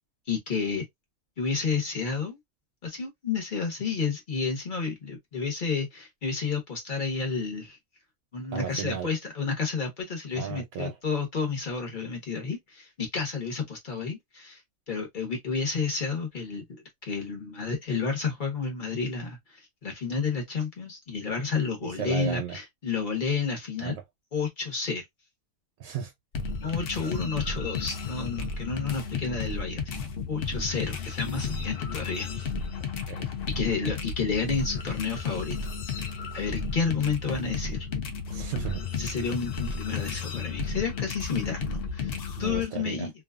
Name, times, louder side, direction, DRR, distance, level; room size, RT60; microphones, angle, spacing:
voice 1, 0.3-0.8 1.4-2.4 2.8-7.8 8.3-14.6 14.9-16.6 17.1-24.0 24.3-25.0 26.6-32.5 33.5-35.6 36.0-36.1 36.3-37.9 38.9-43.1, left 5 dB, 40° left, 1.1 m, -31 dB
voice 2, 8.5-9.1 10.4-11.0 21.8-22.6 23.8-24.0 25.8-26.1 32.8-33.3 38.3-39.1 42.4-43.1, right 9 dB, 80° right, 1.0 m, -35 dB
sound 1, 26.3-42.6, left 5 dB, 60° left, 0.6 m, -33 dB
2.7 x 2.3 x 2.3 m
omnidirectional pair, 1.4 m